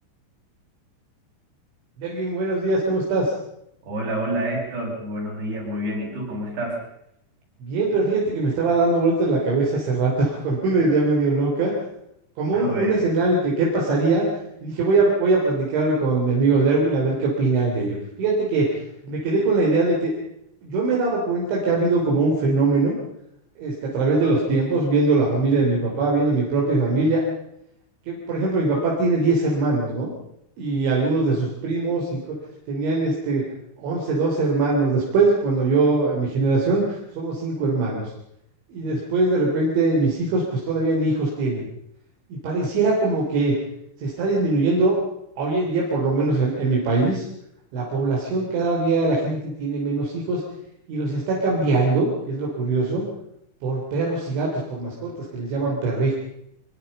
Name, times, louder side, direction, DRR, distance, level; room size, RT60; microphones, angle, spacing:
voice 1, 2.0-3.3 7.6-11.7 12.4-14.3 14.6-20.1 20.6-22.9 23.6-27.2 28.1-30.1 30.6-32.4 32.7-33.4 33.8-38.1 38.7-41.7 42.3-43.5 44.0-45.0 45.4-47.3 47.7-50.4 50.9-53.1 53.6-56.1, right 3 dB, 80° right, -3 dB, 6.1 m, -22 dB
voice 2, 3.8-6.8 12.5-13.0 24.1-24.4 28.6-28.9, right 1 dB, 60° right, -1 dB, 8.9 m, -29 dB
23.5 x 22.5 x 5.6 m, 0.78 s
omnidirectional pair, 5.2 m